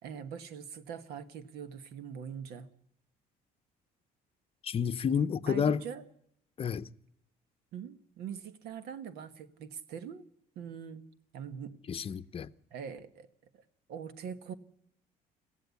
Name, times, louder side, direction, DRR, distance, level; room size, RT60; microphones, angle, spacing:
voice 1, 0.0-2.7 5.5-6.0 7.7-10.3 10.5-11.0 11.3-11.7 12.7-13.3 13.9-14.5, right 7 dB, 85° right, 1.3 m, -42 dB
voice 2, 4.6-5.8 6.6-6.9 11.9-12.5, left 7 dB, 35° left, 0.7 m, -30 dB
22.0 x 15.0 x 8.4 m
cardioid pair, 105°, 16 cm